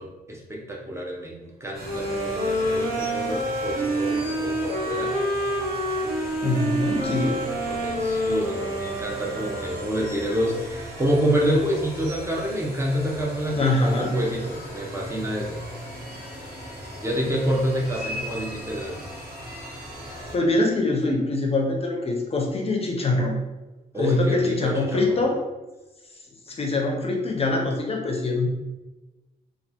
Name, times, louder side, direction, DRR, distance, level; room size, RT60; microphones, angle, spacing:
voice 1, 0.0-5.4 7.0-7.4 7.6-15.6 17.0-19.0 23.9-25.2, equal, 15° right, -2 dB, 0.7 m, -28 dB
sound 1, 1.7-20.4, equal, 75° right, 1.0 m, -38 dB
sound 2, 1.8-10.0, right 1 dB, 55° right, 1.4 m, -27 dB
voice 2, 6.4-7.4 13.5-14.2 20.1-23.4 24.0-25.4 26.5-28.5, left 2 dB, 40° left, 1 dB, 0.5 m, -24 dB
3.3 x 2.4 x 2.8 m, 1.1 s
cardioid pair, 100°, 16 cm